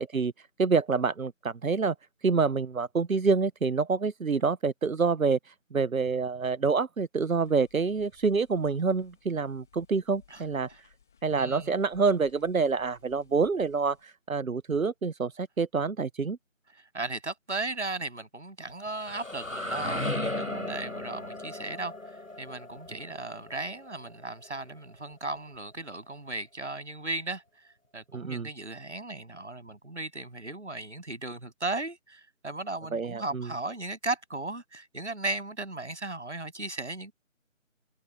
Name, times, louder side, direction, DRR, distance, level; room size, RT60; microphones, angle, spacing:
voice 1, 0.0-1.9 2.2-10.7 11.2-16.4 28.1-28.5 32.9-33.5, right 4 dB, 85° right, 0.8 m, -27 dB
sound 1, 7.4-14.0, left 7 dB, ahead, 1.6 m, -61 dB
voice 2, 11.3-11.7 16.9-21.9 22.4-27.4 27.9-37.1, right 2 dB, 60° right, 8.0 m, -36 dB
sound 2, 18.7-24.5, left 1 dB, 75° left, 4.2 m, -36 dB
figure-of-eight pair, 165°, 40 cm